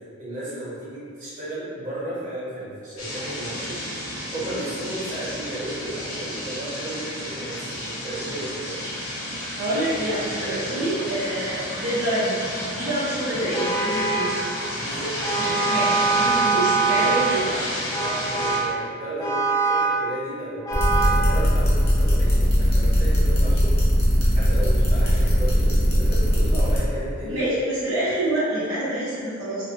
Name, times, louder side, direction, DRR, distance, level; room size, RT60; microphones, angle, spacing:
voice 1, 0.2-3.8 4.3-8.8 10.3-10.9 14.7-15.1 16.2-16.4 18.0-23.7 24.3-27.4, right 1 dB, 40° right, -12 dB, 1.1 m, -34 dB
sound 1, 3.0-18.6, left 1 dB, 85° left, 0.7 m, -31 dB
voice 2, 9.6-14.5 15.4-17.7 27.2-29.7, right 1 dB, 85° right, -10 dB, 0.7 m, -27 dB
Vehicle horn car horn honking, 13.5-14.4 15.2-17.4 17.9-18.8 19.2-20.0 20.7-21.3, right 4 dB, 15° left, 0.3 m, -23 dB
sound 2, 20.7-26.8, equal, 45° left, 0.7 m, -20 dB
2.4 x 2.3 x 2.6 m, 2.3 s
head